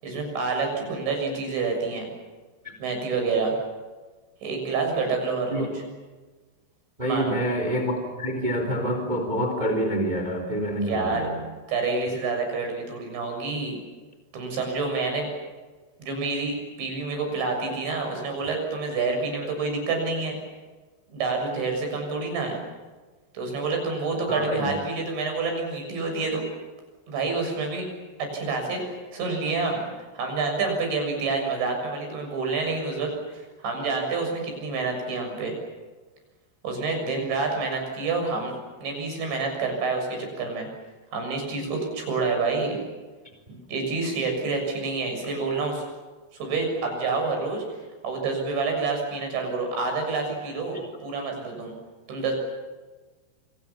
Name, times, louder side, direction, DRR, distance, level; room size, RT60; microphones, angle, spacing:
voice 1, 0.0-2.1 2.8-3.5 4.4-5.7 7.0-7.4 10.8-11.3 11.7-13.8 14.3-15.3 16.0-20.4 21.1-22.6 23.3-26.4 27.1-27.8 28.2-29.9 30.1-35.6 36.6-38.5 38.8-40.7 41.1-42.8 43.5-45.8 46.4-47.6 48.0-51.7 52.1-52.3, right 4 dB, 85° right, 3 dB, 9.3 m, -28 dB
voice 2, 7.0-11.3 24.3-24.7 50.7-50.8, equal, 10° right, 5 dB, 3.7 m, -27 dB
28.5 x 26.5 x 7.4 m, 1.3 s
omnidirectional pair, 5.1 m